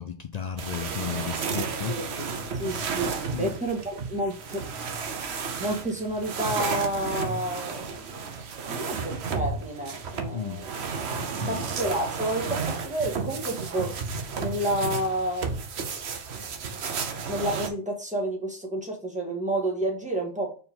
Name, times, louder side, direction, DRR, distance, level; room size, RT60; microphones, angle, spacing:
voice 1, 0.0-2.0 3.3-3.6 10.3-10.7 11.1-11.7, left 7 dB, 75° left, 0.3 m, -34 dB
sound 1, 0.6-17.7, right 5 dB, 65° right, 1.0 m, -33 dB
voice 2, 2.5-4.7 5.6-8.1 8.6-10.8 11.3-14.0 14.4-15.6 16.8-16.9 17.3-20.6, right 1 dB, 5° right, 1.6 m, -30 dB
4.5 x 4.1 x 5.3 m
omnidirectional pair, 1.2 m